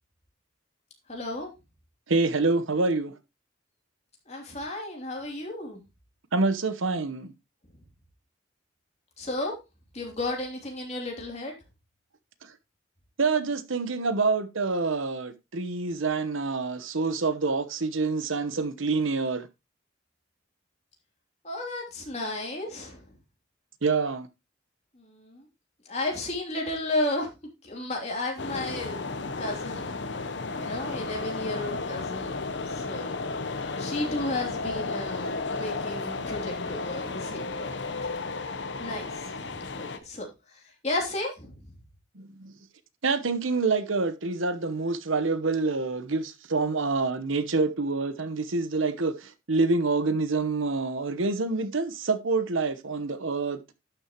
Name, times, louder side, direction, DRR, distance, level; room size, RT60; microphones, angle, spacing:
voice 1, 1.1-1.5 4.3-5.8 9.2-9.5 9.9-11.5 21.4-23.1 25.0-25.4 25.8-27.3 27.6-29.0 29.4-30.0 30.6-32.4 32.7-33.2 33.8-38.1 38.8-41.6, left 2 dB, 35° left, 3.0 m, -33 dB
voice 2, 2.1-3.1 6.3-7.3 12.4-12.5 13.2-19.5 23.8-24.3 42.1-42.5 43.0-53.8, right 3 dB, 85° right, 1.0 m, -27 dB
sound 1, 28.4-40.0, left 3 dB, 60° left, 0.8 m, -33 dB
12.0 x 6.8 x 3.0 m
head